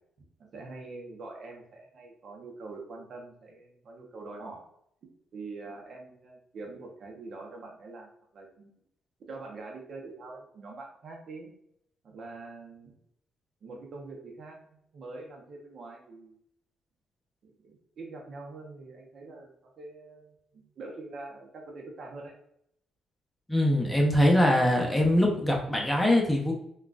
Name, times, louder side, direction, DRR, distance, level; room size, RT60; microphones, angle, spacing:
voice 1, 0.5-4.7 5.3-8.7 9.3-11.5 12.0-13.0 13.6-16.4 17.4-22.3, right 3 dB, 60° right, 0 dB, 0.7 m, -44 dB
voice 2, 23.5-26.5, left 1 dB, 10° left, 0 dB, 0.7 m, -23 dB
3.6 x 2.3 x 2.4 m, 0.72 s
cardioid pair, 90°, 0 cm